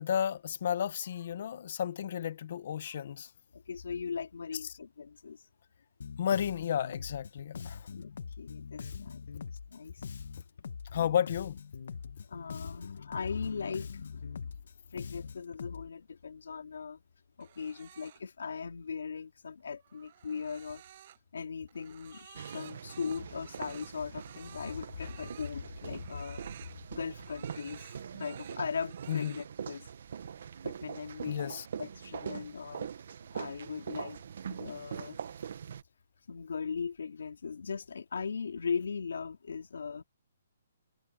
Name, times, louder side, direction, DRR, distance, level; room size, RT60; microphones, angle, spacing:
voice 1, 0.0-3.3 6.2-7.9 10.9-11.6 29.1-29.4 31.3-31.7, left 9 dB, 50° left, 1.0 m, -32 dB
voice 2, 3.5-5.5 7.9-8.1 8.4-10.1 12.3-14.6 14.9-17.0 17.4-20.8 21.3-26.5 26.9-29.9 30.6-32.9 33.3-34.2 34.5-35.2 36.3-40.0, left 5 dB, 85° left, 3.2 m, -39 dB
Bass guitar, 6.0-15.9, left 6 dB, 70° left, 1.5 m, -43 dB
sound 1, 17.4-18.2 19.6-21.2 21.7-25.5 25.9-26.8 27.2-28.6 28.9-29.5, right 11 dB, 40° right, 7.7 m, -54 dB
sound 2, 22.4-35.8, right 7 dB, 60° right, 1.6 m, -43 dB
hypercardioid pair, 165°, 0 cm